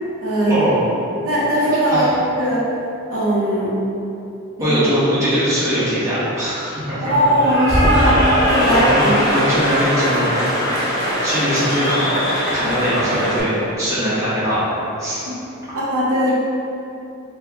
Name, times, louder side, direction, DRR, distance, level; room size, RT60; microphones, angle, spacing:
voice 1, 0.2-0.6 1.2-2.6 3.1-3.8 4.6-4.8 7.0-9.1 12.6-12.8 15.3-15.4 15.7-16.4, equal, 80° right, -8 dB, 0.9 m, -19 dB
voice 2, 4.6-7.1 8.6-9.1 9.3-10.3 11.2-12.2 12.5-13.5 13.8-14.6 15.0-15.2, equal, 15° right, -13 dB, 1.1 m, -21 dB
Cheering / Applause, 7.1-13.4, equal, 20° left, 0.7 m, -20 dB
4.1 x 2.3 x 2.8 m, 2.8 s
head